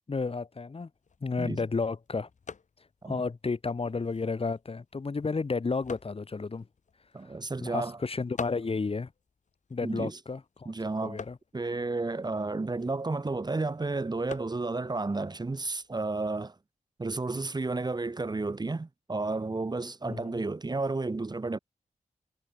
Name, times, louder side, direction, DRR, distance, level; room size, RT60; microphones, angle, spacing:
voice 1, 0.1-0.9 1.2-2.3 3.0-6.7 7.2-7.3 7.6-9.1 9.7-10.7 11.0-11.4 20.1-20.4, left 4 dB, 45° left, 3.3 m, -32 dB
sound 1, 0.9-16.5, left 5 dB, 65° left, 3.3 m, -50 dB
voice 2, 7.1-8.0 9.8-10.2 10.7-11.2 11.5-16.5 17.0-21.6, right 3 dB, 30° right, 2.2 m, -32 dB
wide cardioid pair, 110°, 13 cm